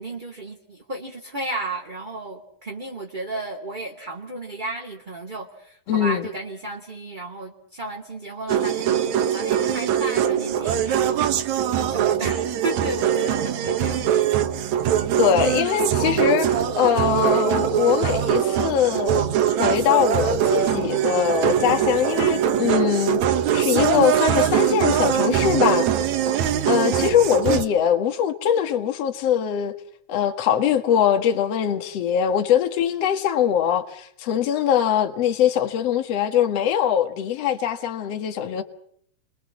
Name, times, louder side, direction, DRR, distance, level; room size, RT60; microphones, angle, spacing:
voice 1, 0.0-11.2 11.9-14.1, right 2 dB, 15° right, 2.1 m, -33 dB
voice 2, 5.9-6.3 15.2-23.2 23.5-25.9 26.6-29.7 30.1-38.6, left 9 dB, 55° left, 2.5 m, -22 dB
sound 1, 8.5-27.7, right 9 dB, 65° right, 2.4 m, -22 dB
30.0 x 23.5 x 7.3 m
omnidirectional pair, 3.9 m